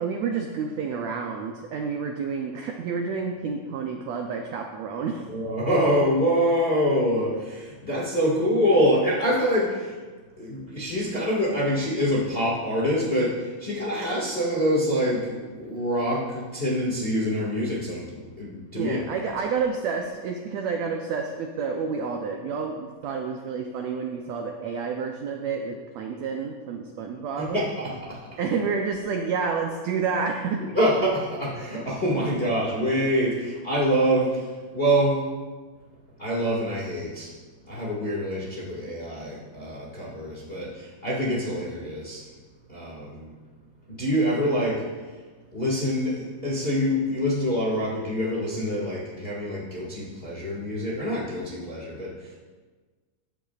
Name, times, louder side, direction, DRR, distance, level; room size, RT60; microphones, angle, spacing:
voice 1, 0.0-5.3 18.8-27.6 28.4-30.6, right 5 dB, 90° right, 2 dB, 1.5 m, -29 dB
voice 2, 5.3-10.0 10.4-19.0 27.4-28.2 30.7-35.3 36.2-37.3 37.7-42.3 42.7-43.3 43.9-45.2 45.5-52.4, equal, 25° left, -6 dB, 1.2 m, -25 dB
15.0 x 9.2 x 2.4 m, 1.4 s
omnidirectional pair, 3.9 m